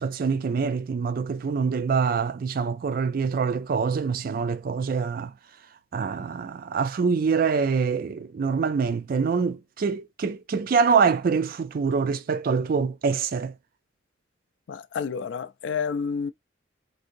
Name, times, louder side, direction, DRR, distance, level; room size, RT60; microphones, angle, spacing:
voice 1, 0.0-5.3 5.9-13.5, right 5 dB, 45° right, 0.3 m, -25 dB
voice 2, 14.7-16.3, left 6 dB, 65° left, 0.3 m, -29 dB
3.6 x 2.7 x 2.6 m
head